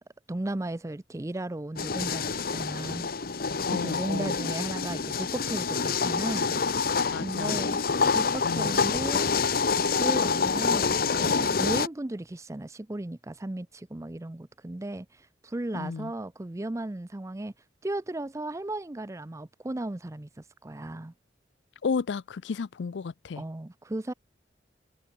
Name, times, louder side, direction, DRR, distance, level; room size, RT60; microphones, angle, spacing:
voice 1, 0.3-3.1 3.7-6.6 7.2-7.8 8.1-9.3 9.8-17.5 17.8-20.3 20.6-21.1 23.4-24.1, right 1 dB, 15° right, 0.5 m, -35 dB
sound 1, 1.8-11.9, left 5 dB, 55° left, 1.1 m, -27 dB
voice 2, 3.6-4.4 7.1-7.6 8.4-8.7 15.7-16.1 21.8-23.4, left 5 dB, 75° left, 0.4 m, -33 dB
head